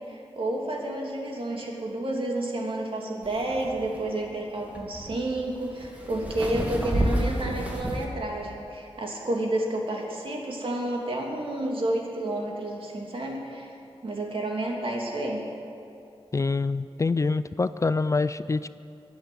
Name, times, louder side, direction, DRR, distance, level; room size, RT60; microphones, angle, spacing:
voice 1, 0.1-13.7 14.0-15.5, right 1 dB, 60° right, -1 dB, 2.8 m, -30 dB
sound 1, 3.2-8.0, right 1 dB, 15° right, 2.5 m, -30 dB
voice 2, 16.3-18.7, left 3 dB, 30° left, 14 dB, 0.4 m, -25 dB
23.0 x 8.3 x 7.0 m, 2.6 s
wide cardioid pair, 95°, 10 cm